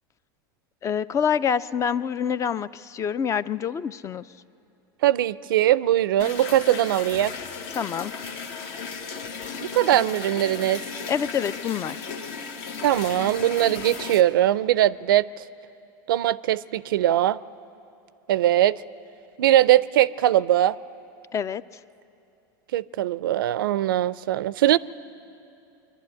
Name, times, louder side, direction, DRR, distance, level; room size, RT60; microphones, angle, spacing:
voice 1, 0.8-4.2 7.7-8.1 11.1-12.1 21.3-21.6, left 7 dB, 25° left, 17 dB, 0.4 m, -26 dB
voice 2, 5.0-7.3 9.6-10.8 12.8-15.3 16.1-17.4 18.3-18.8 19.4-20.8 22.7-24.8, right 13 dB, 85° right, 19 dB, 0.4 m, -21 dB
sound 1, 6.2-14.2, left 5 dB, 60° left, 1.4 m, -35 dB
23.5 x 11.5 x 9.6 m, 2.7 s
hypercardioid pair, 110°, 11 cm